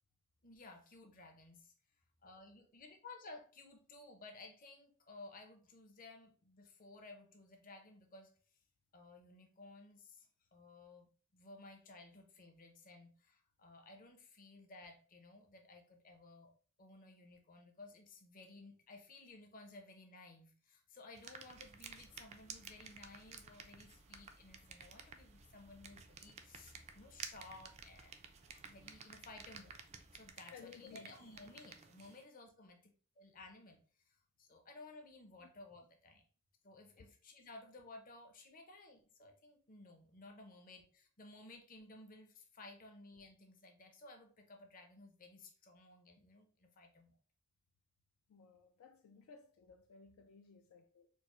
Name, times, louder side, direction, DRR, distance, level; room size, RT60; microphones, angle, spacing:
voice 1, 0.4-1.7 2.2-8.3 8.9-16.5 16.8-28.1 28.7-29.8 30.1-36.2 36.6-40.8 41.2-47.1, left 2 dB, 40° left, 0.6 m, -57 dB
sound 1, 21.1-32.2, right 6 dB, 30° right, 0.3 m, -54 dB
sound 2, 21.5-30.3, equal, 90° right, 1.2 m, -66 dB
voice 2, 30.5-31.1 35.4-35.5 48.3-51.1, left 6 dB, 75° left, 0.3 m, -58 dB
4.4 x 2.0 x 2.9 m
head